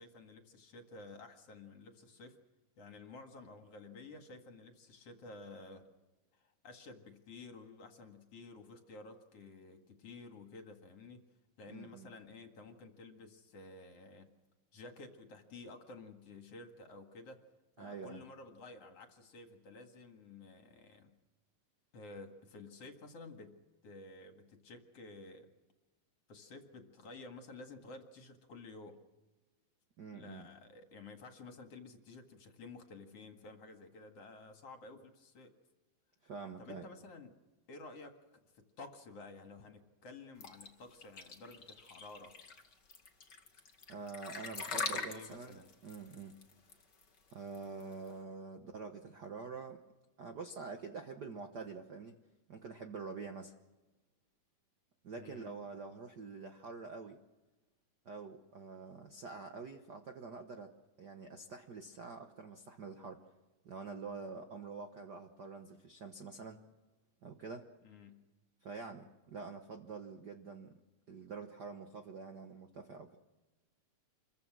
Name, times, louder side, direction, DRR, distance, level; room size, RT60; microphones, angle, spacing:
voice 1, 0.0-2.4 2.8-5.9 6.3-11.2 11.6-14.3 14.7-17.4 17.8-21.2 21.9-25.5 26.3-29.0 30.1-35.5 36.6-37.4 37.7-42.4 44.7-45.7 55.2-55.6 67.8-68.2, left 3 dB, 50° left, 5 dB, 2.8 m, -52 dB
voice 2, 11.7-12.1 17.8-18.2 30.0-30.4 36.2-36.9 43.9-46.4 47.3-49.8 50.2-52.2 52.5-53.5 55.0-57.2 58.0-60.7 61.0-63.2 63.6-66.6 67.2-67.7 68.6-70.7 71.1-73.1, right 4 dB, 85° right, 5 dB, 0.9 m, -46 dB
sound 1, 40.4-48.1, left 4 dB, 35° left, 2.5 m, -43 dB
27.5 x 22.5 x 6.2 m, 1.1 s
omnidirectional pair, 3.7 m